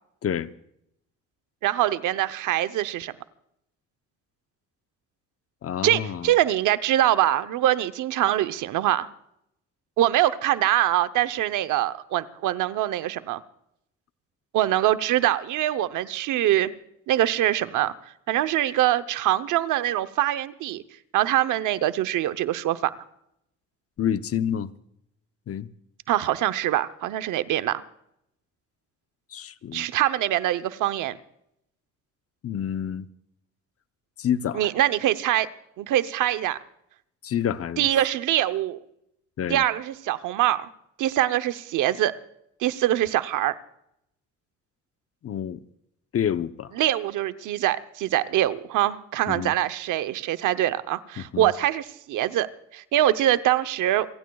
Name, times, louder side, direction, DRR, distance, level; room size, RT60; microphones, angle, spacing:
voice 1, 1.6-3.1 5.8-9.1 10.0-13.4 14.5-16.7 17.1-17.9 18.3-20.8 21.1-22.9 26.1-27.8 29.7-31.2 34.5-35.5 35.8-36.6 37.8-38.8 39.5-40.7 41.0-42.1 42.6-43.5 46.7-52.5 52.7-54.1, right 13 dB, 85° right, 0.8 m, -23 dB
voice 2, 5.6-6.3 24.0-24.7 25.5-25.7 29.3-29.9 32.4-33.1 34.2-34.7 37.2-37.9 39.4-39.6 45.2-45.6 46.1-46.7 49.3-49.5 51.2-51.5, left 9 dB, 50° left, 0.8 m, -28 dB
29.0 x 16.0 x 2.3 m
cardioid pair, 90°, 30 cm